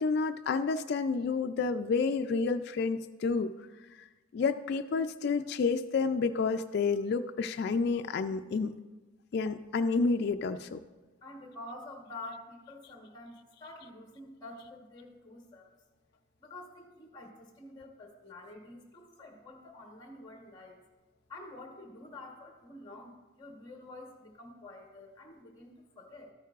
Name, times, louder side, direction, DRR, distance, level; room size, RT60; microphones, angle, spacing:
voice 1, 0.0-3.5 4.3-8.7 9.3-10.8, left 4 dB, 55° left, 8 dB, 0.3 m, -29 dB
voice 2, 11.2-15.7 16.4-20.8 21.3-26.3, left 2 dB, 20° left, 1 dB, 1.0 m, -48 dB
12.5 x 9.1 x 2.4 m, 1.2 s
head